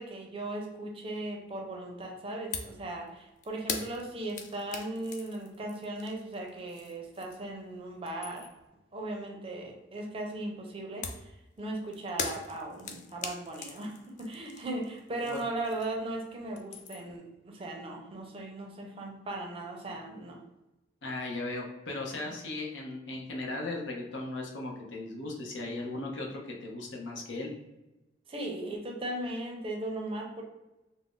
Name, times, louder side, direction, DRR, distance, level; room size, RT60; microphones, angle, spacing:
voice 1, 0.0-8.5 8.9-20.4 22.3-22.4 28.3-30.4, right 2 dB, 30° right, 1 dB, 0.5 m, -38 dB
sound 1, 2.5-2.8 3.1-7.6 7.9-8.7 11.0-16.1 16.4-17.2, left 5 dB, 40° left, 0.3 m, -41 dB
voice 2, 21.0-27.5, left 2 dB, 90° left, 0 dB, 0.7 m, -37 dB
2.5 x 2.0 x 3.6 m, 0.99 s
head